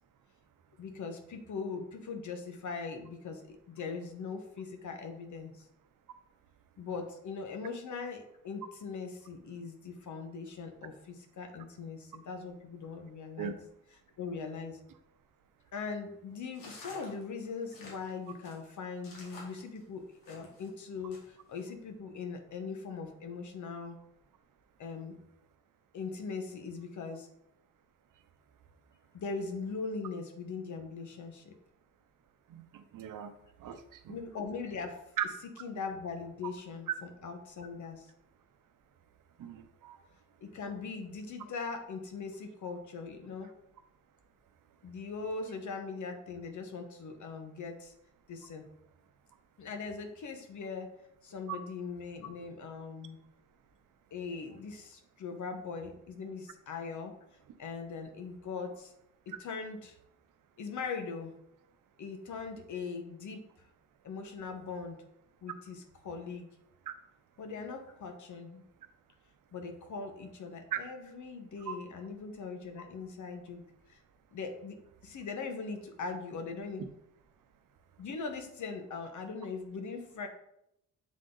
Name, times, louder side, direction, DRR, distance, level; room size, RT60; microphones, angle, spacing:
voice 1, 0.8-5.7 6.8-13.5 14.2-14.8 15.7-24.0 24.8-25.2 25.9-27.3 29.1-31.5 34.1-35.1 35.4-38.1 40.4-43.5 44.8-47.9 48.3-48.7 49.6-50.9 51.2-53.2 54.1-57.1 57.6-58.9 59.3-60.0 60.6-61.3 62.0-63.4 64.0-65.0 65.4-66.5 67.4-68.6 69.5-74.0 74.3-74.8 75.0-76.8 78.0-80.3, left 4 dB, 60° left, 5 dB, 1.2 m, -40 dB
sound 1, 16.5-20.7 21.1-21.6, left 2 dB, 90° left, 1.9 m, -51 dB
voice 2, 32.5-33.3 33.6-34.1 35.2-35.3 39.4-40.0 66.9-67.0 70.7-70.8 71.7-71.8, right 9 dB, 70° right, 9 dB, 0.8 m, -37 dB
7.4 x 3.7 x 3.9 m, 0.77 s
cardioid pair, 85°, 33 cm